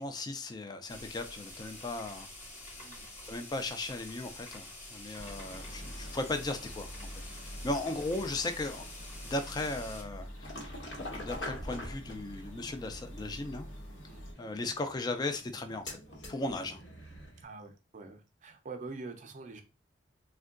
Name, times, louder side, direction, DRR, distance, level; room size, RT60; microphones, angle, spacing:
voice 1, 0.0-2.3 3.3-6.9 7.4-8.9 9.2-10.7 11.1-13.7 14.4-16.0 16.3-16.8, left 2 dB, 20° left, 0.3 m, -36 dB
sound 1, 0.9-10.0, left 2 dB, 35° left, 0.9 m, -47 dB
voice 2, 2.8-3.1 7.9-8.0 14.1-14.3 17.4-19.6, right 3 dB, 40° right, 0.5 m, -45 dB
sound 2, 5.1-14.3, equal, 90° left, 0.8 m, -46 dB
sound 3, 10.4-17.4, left 1 dB, 65° left, 1.0 m, -45 dB
3.5 x 2.2 x 2.4 m
head